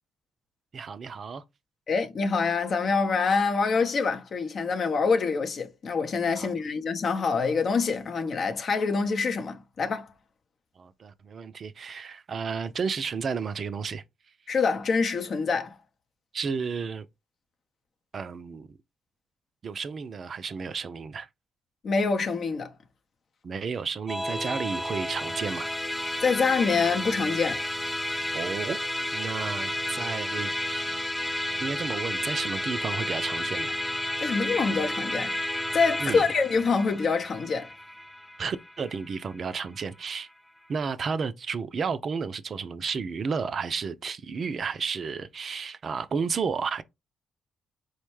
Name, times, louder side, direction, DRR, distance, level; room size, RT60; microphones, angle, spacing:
voice 1, 0.7-1.4 10.8-14.0 16.3-17.1 18.1-18.7 19.6-21.3 23.4-25.7 28.3-28.8 29.1-31.0 31.6-33.7 36.0-36.2 38.4-40.3 40.7-46.8, right 5 dB, 50° right, 0.4 m, -32 dB
voice 2, 1.9-10.1 14.5-15.8 21.8-22.7 26.2-27.7 34.2-35.3 35.7-37.7, left 4 dB, 55° left, 0.6 m, -26 dB
Musical instrument, 24.1-39.6, left 1 dB, 5° left, 0.5 m, -31 dB
4.4 x 2.1 x 3.0 m
hypercardioid pair, 45°, 0 cm